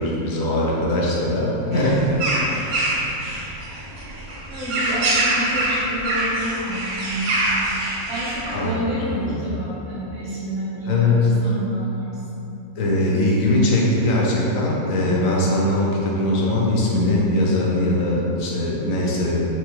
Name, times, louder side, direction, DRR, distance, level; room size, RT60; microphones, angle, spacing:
voice 1, 0.0-2.0 3.2-3.4 8.5-9.4 10.9-11.3 12.8-19.4, left 1 dB, 65° left, -4 dB, 1.0 m, -21 dB
voice 2, 1.6-2.0 2.3-2.6 4.5-12.5, right 1 dB, 25° right, -9 dB, 0.7 m, -29 dB
sound 1, 1.7-8.6, right 1 dB, 75° right, 1.1 m, -24 dB
4.5 x 2.5 x 2.9 m, 2.9 s
omnidirectional pair, 1.6 m